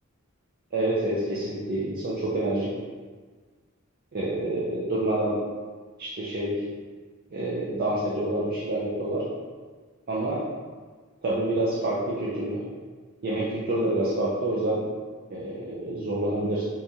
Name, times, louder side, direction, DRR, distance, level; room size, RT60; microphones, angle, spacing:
voice 1, 0.7-2.7 4.1-5.4 6.0-6.6 7.3-9.2 10.1-10.4 11.2-12.6 13.2-14.8 15.3-16.6, right 1 dB, 50° right, -7 dB, 0.5 m, -27 dB
2.9 x 2.7 x 3.6 m, 1.5 s
head